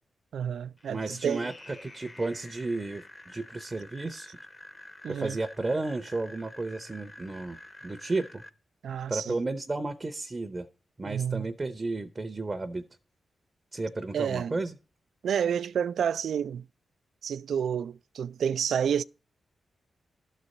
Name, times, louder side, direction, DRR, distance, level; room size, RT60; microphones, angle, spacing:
voice 1, 0.3-1.5 5.0-5.4 8.8-9.4 11.0-11.5 14.1-14.5 15.2-16.6 17.2-19.0, right 8 dB, 80° right, 0.4 m, -29 dB
sound 1, 0.8-8.5, left 2 dB, 20° left, 0.7 m, -49 dB
voice 2, 0.9-4.4 5.1-8.4 9.1-10.7 11.0-12.8 13.7-14.8, right 2 dB, 20° right, 0.6 m, -33 dB
12.5 x 4.2 x 6.3 m
wide cardioid pair, 165°, 0 cm